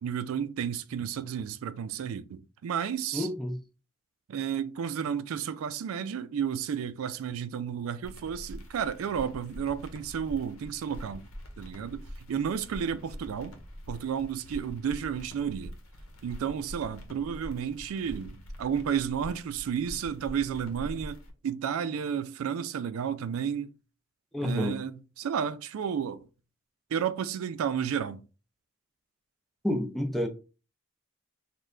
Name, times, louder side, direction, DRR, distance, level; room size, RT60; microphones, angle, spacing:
voice 1, 0.0-3.3 4.3-11.2 11.6-13.6 13.9-15.7 16.2-23.7 24.4-26.3 26.9-28.2, right 7 dB, 85° right, 0.3 m, -32 dB
voice 2, 3.1-3.6 24.3-24.8 29.6-30.3, left 1 dB, ahead, 0.4 m, -29 dB
sound 1, 8.0-21.3, equal, 85° left, 0.8 m, -44 dB
3.2 x 2.1 x 3.7 m
head